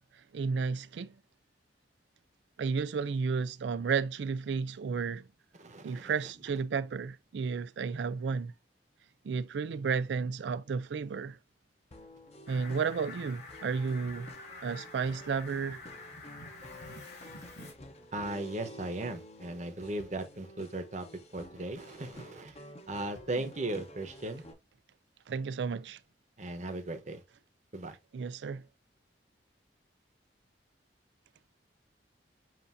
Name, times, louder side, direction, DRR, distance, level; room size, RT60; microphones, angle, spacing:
voice 1, 0.1-1.1 2.6-5.3 5.8-8.5 9.2-11.4 12.5-14.3 14.6-15.8 25.3-26.0 28.1-28.6, right 5 dB, 80° right, 0.4 m, -32 dB
voice 2, 5.6-6.1 18.1-21.1 21.3-22.6 22.9-24.4 26.4-27.2 27.7-28.0, right 2 dB, 45° right, 1.0 m, -37 dB
sound 1, 11.9-24.5, left 1 dB, 40° left, 0.9 m, -51 dB
Fowl, 12.5-17.7, left 3 dB, 65° left, 2.8 m, -48 dB
7.5 x 2.6 x 2.6 m
head